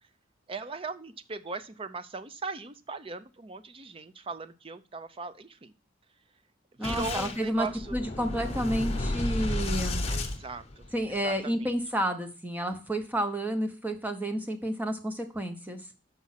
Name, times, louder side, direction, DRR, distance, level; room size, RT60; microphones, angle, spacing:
voice 1, 0.5-5.7 6.8-8.0 10.1-10.8 11.2-11.7, right 4 dB, 30° right, 13 dB, 0.5 m, -39 dB
Boom, 6.8-11.2, left 2 dB, 30° left, 0.9 m, -32 dB
voice 2, 6.8-7.7 7.9-10.1 10.9-15.8, right 1 dB, 10° right, 6 dB, 0.9 m, -30 dB
7.3 x 5.4 x 5.6 m, 0.35 s
head